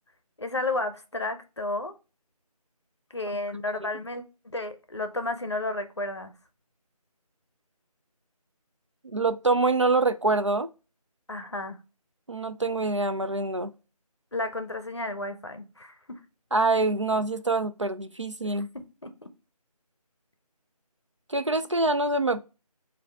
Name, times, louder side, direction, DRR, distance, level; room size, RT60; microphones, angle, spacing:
voice 1, 0.4-1.9 3.1-4.2 4.5-6.3 11.3-11.8 14.3-16.2 19.0-19.3, left 2 dB, 45° left, 0.6 m, -32 dB
voice 2, 9.0-10.7 12.3-13.7 16.5-18.7 21.3-22.4, right 3 dB, 50° right, 0.4 m, -25 dB
5.3 x 2.6 x 3.5 m
figure-of-eight pair, 175°, 20 cm